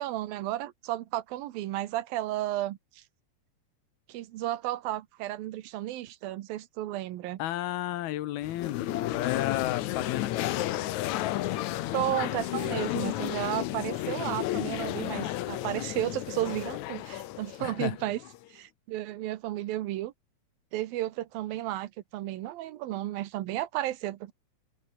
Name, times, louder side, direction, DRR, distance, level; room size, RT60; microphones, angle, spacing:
voice 1, 0.0-2.8 4.1-7.4 11.9-18.2 18.5-20.1 20.7-24.3, right 14 dB, 80° right, 2.8 m, -33 dB
voice 2, 7.4-11.5 17.6-18.0, left 14 dB, 90° left, 3.2 m, -33 dB
sound 1, 8.4-18.4, left 15 dB, 70° left, 1.9 m, -32 dB
open air
omnidirectional pair, 4.2 m